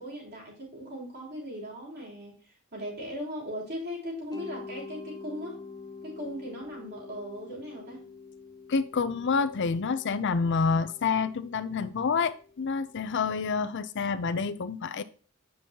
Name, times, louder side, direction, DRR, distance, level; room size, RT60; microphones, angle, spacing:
voice 1, 0.0-5.6 6.0-8.0, equal, 50° right, 3.4 m, -38 dB
Mallet percussion, 4.3-13.1, left 4 dB, 20° left, 1.0 m, -47 dB
voice 2, 8.7-15.0, left 5 dB, 55° left, 0.5 m, -28 dB
8.7 x 5.4 x 2.9 m
head